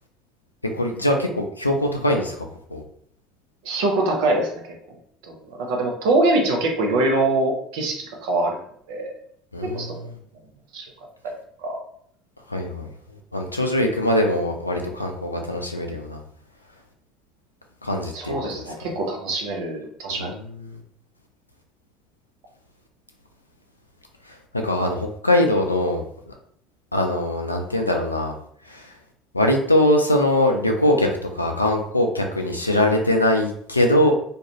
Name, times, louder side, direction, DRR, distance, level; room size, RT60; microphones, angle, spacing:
voice 1, 0.8-2.8 9.5-10.1 12.5-12.9 13.3-16.2 17.8-18.7 20.1-20.8 24.3-26.3 26.9-28.3 28.7-28.9 29.3-34.1, left 1 dB, 90° left, 3 dB, 0.3 m, -22 dB
voice 2, 3.6-4.6 5.3-8.6 8.9-9.1 9.6-9.9 10.7-10.9 11.2-11.3 11.6-11.8 18.1-20.3, right 2 dB, 65° right, 1 dB, 0.6 m, -23 dB
2.4 x 2.2 x 2.9 m, 0.66 s
figure-of-eight pair, 60°, 0 cm